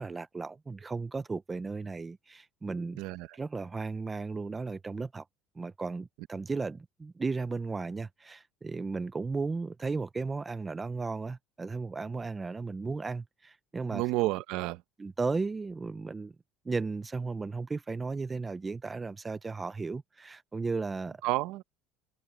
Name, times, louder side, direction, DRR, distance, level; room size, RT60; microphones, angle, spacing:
voice 1, 0.0-3.0 3.3-5.2 5.6-14.0 15.0-16.3 16.7-21.2, right 4 dB, 10° right, 0.4 m, -35 dB
voice 2, 3.0-3.3 13.9-14.8 21.2-21.6, right 18 dB, 60° right, 0.8 m, -30 dB
cardioid pair, 175°, 0 cm